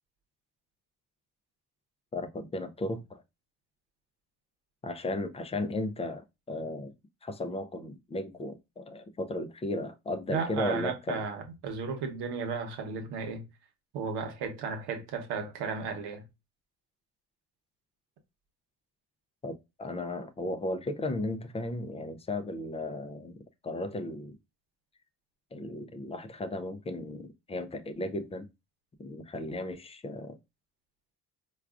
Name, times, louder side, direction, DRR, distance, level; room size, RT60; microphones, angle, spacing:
voice 1, 2.1-3.2 4.8-6.9 7.2-11.2 19.4-24.4 25.5-28.5 29.0-30.4, left 2 dB, 15° left, 0.3 m, -35 dB
voice 2, 10.3-13.4 13.9-16.2, right 5 dB, 85° right, 0.9 m, -34 dB
4.6 x 2.3 x 2.3 m
cardioid pair, 115°, 39 cm